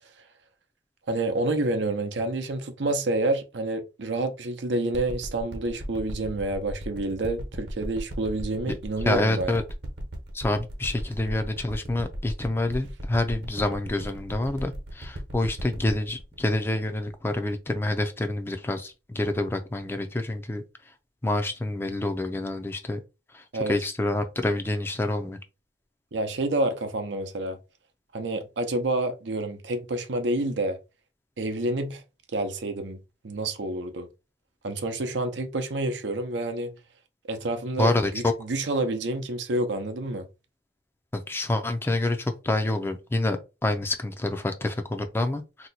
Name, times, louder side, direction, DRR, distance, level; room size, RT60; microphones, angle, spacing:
voice 1, 1.1-9.6 23.5-23.8 26.1-27.6 28.1-30.8 31.4-32.0 32.3-34.1 34.6-36.8 37.3-40.3, right 2 dB, 85° right, 0.6 m, -28 dB
sound 1, 4.9-17.7 18.3-18.4, equal, 65° right, 0.9 m, -36 dB
voice 2, 9.1-9.6 10.3-20.6 21.2-23.0 23.3-25.4 37.8-38.3 41.1-45.7, left 2 dB, 15° left, 0.4 m, -27 dB
2.8 x 2.2 x 4.0 m
head